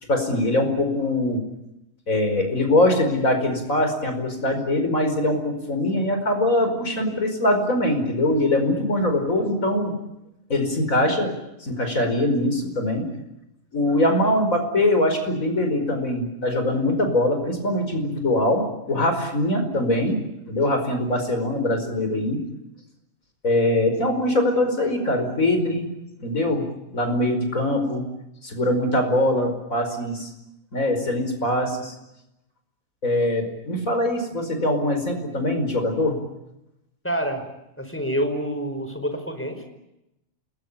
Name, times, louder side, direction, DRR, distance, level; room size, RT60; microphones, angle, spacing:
voice 1, 0.1-1.4 2.1-9.9 10.5-11.3 11.6-13.1 13.7-20.2 20.5-22.4 23.4-25.9 26.2-26.6 26.9-28.1 28.4-30.3 30.7-31.9 33.0-36.2, left 1 dB, 80° left, 6 dB, 5.5 m, -22 dB
voice 2, 37.0-37.4 37.8-39.7, equal, 10° left, 6 dB, 5.0 m, -27 dB
28.5 x 21.0 x 8.7 m, 0.89 s
omnidirectional pair, 1.4 m